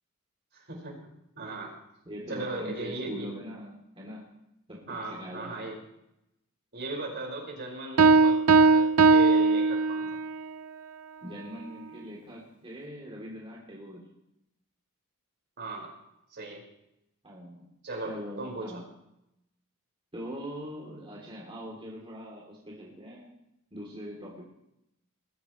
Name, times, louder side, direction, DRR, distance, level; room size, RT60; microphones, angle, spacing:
voice 1, 0.5-1.1 1.4-1.7 2.3-3.3 4.9-5.8 6.7-10.2 15.6-15.9 16.3-16.6 17.8-18.7, right 2 dB, 50° right, 0 dB, 5.4 m, -37 dB
voice 2, 2.0-4.3 4.7-5.7 11.2-14.0 17.2-17.7 18.0-18.8 20.1-23.3 23.7-24.5, equal, 25° right, -3 dB, 3.2 m, -42 dB
Piano, 8.0-10.3, right 4 dB, 75° right, 0.6 m, -19 dB
21.0 x 15.0 x 3.2 m, 0.85 s
head